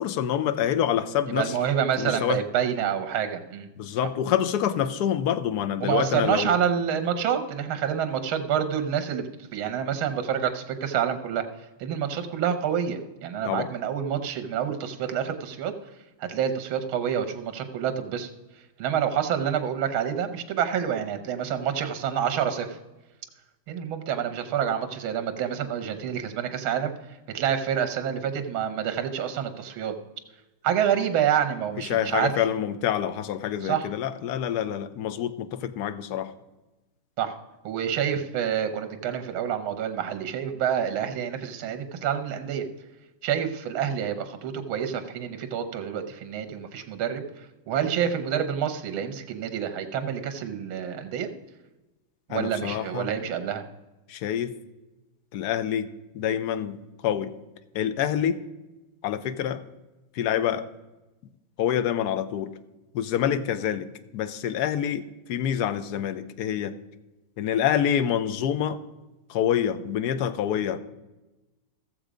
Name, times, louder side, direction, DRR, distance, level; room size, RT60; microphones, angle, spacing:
voice 1, 0.0-1.5 2.0-2.4 3.8-6.6 13.4-13.7 31.9-36.3 52.3-53.1 54.1-54.6 55.3-55.9 56.1-57.3 57.7-58.4 59.0-59.6 60.1-60.7 61.6-62.5 62.9-63.9 64.1-66.8 67.4-68.8 69.3-70.8, left 10 dB, 70° left, 12 dB, 1.0 m, -26 dB
voice 2, 1.3-3.7 5.8-11.4 11.8-15.7 16.2-18.3 18.8-22.8 23.7-26.9 27.3-29.9 30.6-32.3 33.6-33.9 37.2-37.4 37.6-42.7 43.2-51.3 52.3-53.6, right 8 dB, 80° right, 8 dB, 1.8 m, -28 dB
15.0 x 7.3 x 5.0 m, 1.1 s
omnidirectional pair, 2.2 m